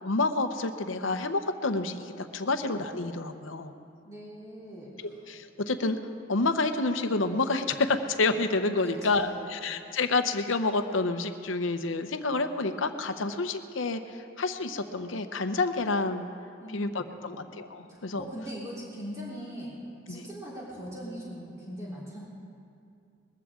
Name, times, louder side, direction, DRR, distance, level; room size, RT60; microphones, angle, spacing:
voice 1, 0.0-3.7 5.0-6.0 6.3-16.3 16.7-18.3 20.1-20.2, left 3 dB, 90° left, 8 dB, 0.8 m, -29 dB
voice 2, 4.0-4.9 8.8-9.6 16.6-16.9 17.2-17.4 17.9-19.7 20.1-22.2, equal, 15° right, -7 dB, 3.6 m, -40 dB
21.0 x 14.5 x 3.8 m, 2.4 s
head